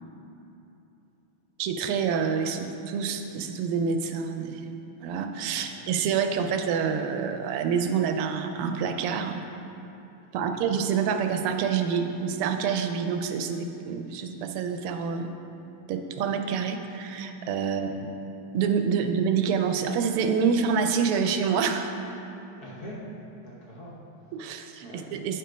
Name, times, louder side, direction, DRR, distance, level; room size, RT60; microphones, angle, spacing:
voice 1, 1.6-9.4 10.3-15.3 15.9-18.1 18.5-22.0 24.3-25.4, right 6 dB, 85° right, 6 dB, 1.5 m, -27 dB
voice 2, 10.3-10.6 17.7-18.0 22.6-23.0 23.4-24.3 24.8-25.1, equal, 50° left, -5 dB, 1.4 m, -45 dB
8.9 x 4.5 x 5.0 m, 2.9 s
omnidirectional pair, 2.4 m